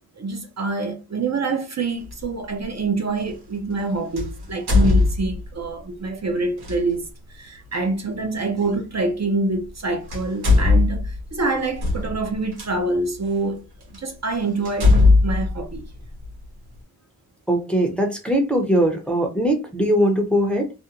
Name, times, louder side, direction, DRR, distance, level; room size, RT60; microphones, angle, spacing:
voice 1, 0.2-7.0 7.3-13.7 13.9-15.8, right 3 dB, 45° right, 0.6 m, -26 dB
sound 1, 2.1-2.2 4.2-5.6 6.6-6.8 8.6-8.7 9.7-9.8 10.1-12.7 13.4-13.5 13.9-14.0 14.7-16.4, left 3 dB, 85° right, 1.1 m, -19 dB
voice 2, 17.5-20.7, equal, 5° left, 0.6 m, -20 dB
2.5 x 2.1 x 2.8 m
wide cardioid pair, 90°, 38 cm